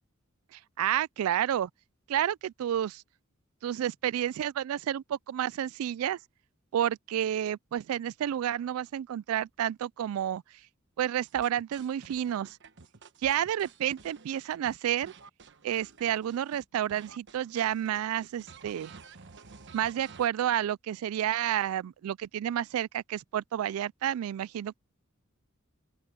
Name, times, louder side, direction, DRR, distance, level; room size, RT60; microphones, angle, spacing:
voice 1, 0.5-1.7 2.1-3.0 3.6-6.2 6.7-10.4 11.0-12.6 13.2-15.1 15.6-18.9 19.7-24.8, right 10 dB, 80° right, 0.3 m, -30 dB
sound 1, 11.3-16.6 16.9-20.3, right 5 dB, 60° right, 1.1 m, -52 dB
open air
head